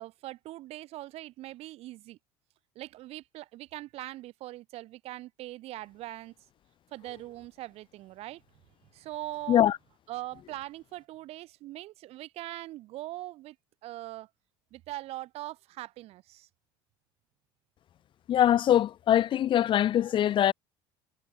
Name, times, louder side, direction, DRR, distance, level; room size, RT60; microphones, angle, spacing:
voice 1, 0.0-2.2 2.7-6.3 6.9-8.4 8.9-9.7 10.1-13.6 13.8-14.3 14.7-16.5, right 16 dB, 60° right, 6.0 m, -41 dB
voice 2, 18.3-20.5, left 11 dB, 45° left, 0.8 m, -23 dB
supercardioid pair, 85°, 12 cm